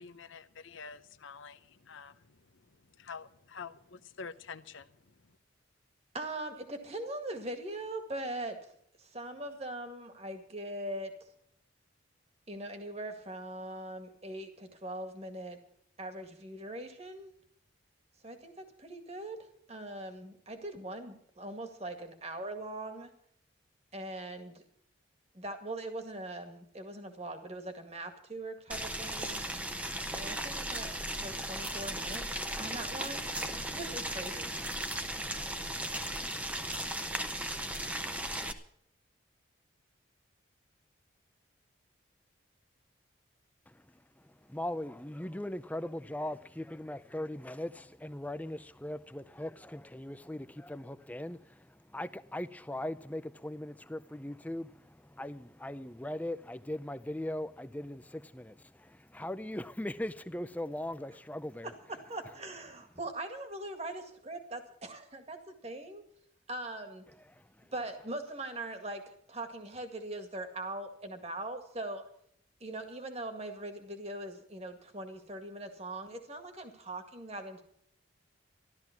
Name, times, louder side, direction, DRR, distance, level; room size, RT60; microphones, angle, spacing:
voice 1, 0.0-1.6 1.9-2.1 3.0-4.8, left 5 dB, 80° left, 0.8 m, -46 dB
voice 2, 6.1-11.2 12.5-15.6 16.0-17.3 18.2-23.1 23.9-24.6 25.3-29.4 30.1-31.0 31.2-34.5 61.6-66.0 66.5-67.1 67.7-72.1 72.6-77.6, right 1 dB, 30° right, 2.0 m, -41 dB
Boiling, 28.7-38.5, right 1 dB, 5° right, 0.9 m, -36 dB
voice 3, 44.2-61.7 67.3-67.7, left 1 dB, 10° left, 0.5 m, -40 dB
14.0 x 12.5 x 5.9 m
head